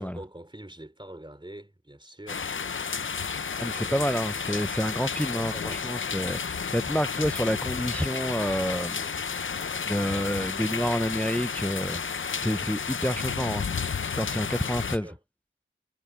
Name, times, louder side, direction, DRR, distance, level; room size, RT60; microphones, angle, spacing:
voice 1, 0.0-2.8 3.8-4.6 5.3-5.9 14.6-15.2, right 1 dB, 20° right, 3.1 m, -45 dB
sound 1, 2.3-15.0, left 6 dB, 70° left, 0.5 m, -32 dB
voice 2, 3.6-9.0 9.9-12.0 12.4-13.8 14.1-15.1, equal, 5° left, 0.4 m, -28 dB
wide cardioid pair, 45°, 21 cm